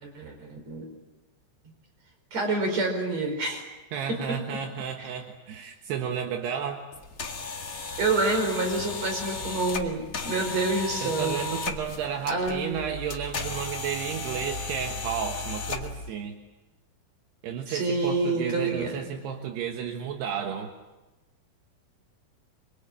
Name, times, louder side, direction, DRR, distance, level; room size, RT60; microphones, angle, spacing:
voice 1, 0.0-0.8 2.3-3.7 5.0-5.1 8.0-11.4 12.3-12.8 17.7-18.9, right 3 dB, 40° right, 4 dB, 5.8 m, -27 dB
voice 2, 3.9-6.8 10.2-10.6 11.0-16.4 17.4-20.7, right 8 dB, 75° right, 4 dB, 3.5 m, -33 dB
sound 1, 6.9-16.1, left 4 dB, 75° left, 0.7 m, -35 dB
27.0 x 23.0 x 8.9 m, 1.1 s
omnidirectional pair, 4.8 m